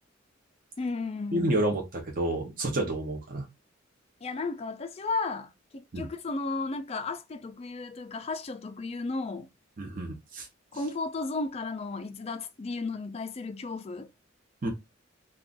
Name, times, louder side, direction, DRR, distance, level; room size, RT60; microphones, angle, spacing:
voice 1, 0.8-1.5 4.2-9.5 10.7-14.1, left 3 dB, 30° left, 0.3 m, -34 dB
voice 2, 1.3-3.4 5.9-6.1 9.8-10.5 14.6-14.7, right 1 dB, 45° right, 0.7 m, -29 dB
2.5 x 2.2 x 3.7 m
head